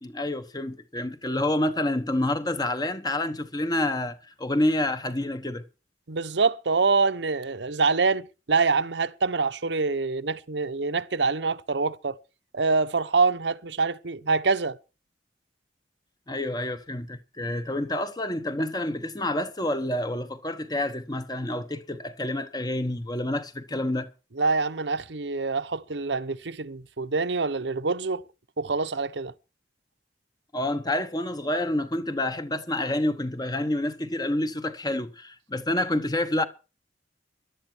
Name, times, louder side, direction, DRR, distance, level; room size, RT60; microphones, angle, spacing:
voice 1, 0.0-5.6 16.3-24.1 30.5-36.5, left 1 dB, 20° left, 1.1 m, -28 dB
voice 2, 6.1-12.2 12.5-14.8 24.4-28.2 28.6-29.3, right 4 dB, 80° right, 0.9 m, -25 dB
18.0 x 12.0 x 4.6 m
head